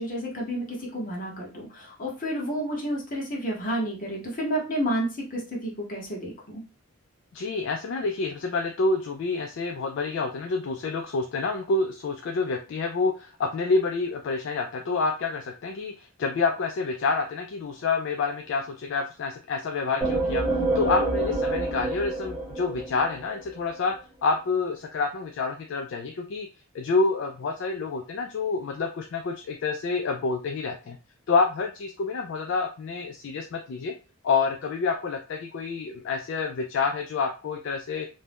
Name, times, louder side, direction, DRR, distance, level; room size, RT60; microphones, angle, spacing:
voice 1, 0.0-6.6, equal, 40° left, -2 dB, 0.9 m, -30 dB
voice 2, 7.3-20.5 20.7-26.5 26.7-31.0 31.3-33.9 34.2-38.1, left 4 dB, 55° left, 4 dB, 0.3 m, -28 dB
sound 1, 20.0-23.6, right 2 dB, 5° right, 0.8 m, -27 dB
2.6 x 2.2 x 3.3 m, 0.33 s
head